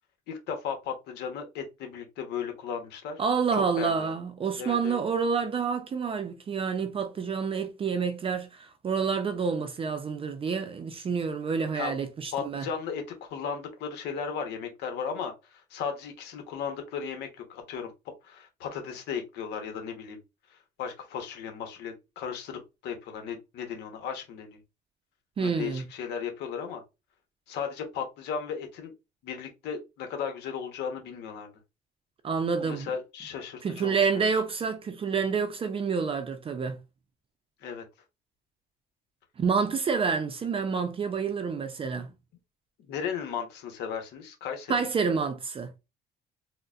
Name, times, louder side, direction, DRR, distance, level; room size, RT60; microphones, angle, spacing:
voice 1, 0.3-3.2 3.5-4.1 4.6-5.0 11.7-11.9 12.3-17.9 18.2-20.2 20.5-24.6 25.4-26.8 27.5-28.9 29.2-31.6 32.6-34.0 37.6-37.8 42.9-44.7, left 7 dB, 80° left, 1.0 m, -36 dB
voice 2, 3.2-12.6 25.4-25.8 32.2-32.9 33.6-36.8 39.4-42.1 44.7-45.7, right 5 dB, 35° right, 0.5 m, -28 dB
3.9 x 2.1 x 2.4 m
cardioid pair, 110°, 17 cm